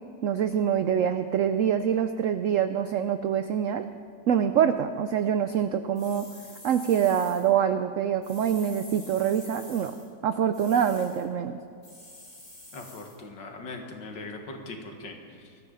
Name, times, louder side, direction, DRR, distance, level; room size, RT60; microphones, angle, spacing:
voice 1, 0.2-3.9 4.3-6.3 6.6-9.9 10.2-11.6, right 8 dB, 85° right, 9 dB, 0.7 m, -25 dB
sound 1, 6.0-7.5 8.2-10.1 10.5-11.2 11.8-13.2, left 1 dB, 25° left, 2.9 m, -48 dB
voice 2, 12.7-15.6, left 2 dB, 75° left, 3 dB, 2.3 m, -40 dB
21.0 x 13.5 x 3.9 m, 2.3 s
omnidirectional pair, 2.0 m